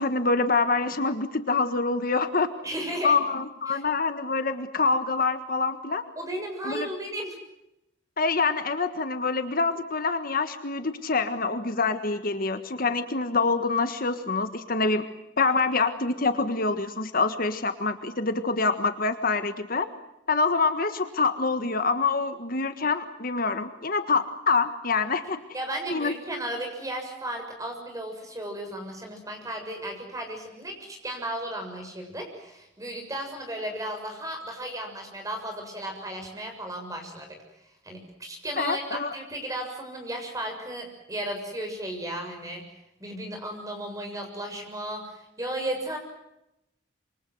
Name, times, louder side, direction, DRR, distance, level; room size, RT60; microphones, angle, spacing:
voice 1, 0.0-2.5 3.0-6.0 6.6-6.9 8.2-15.0 15.4-19.9 20.3-25.4 25.9-26.1 38.6-39.1, left 4 dB, 45° left, 9 dB, 1.6 m, -26 dB
voice 2, 2.6-3.2 3.7-3.8 6.2-7.4 25.5-37.4 37.8-42.6 43.0-46.0, right 1 dB, 15° right, 4 dB, 7.2 m, -35 dB
27.0 x 24.5 x 7.8 m, 0.87 s
head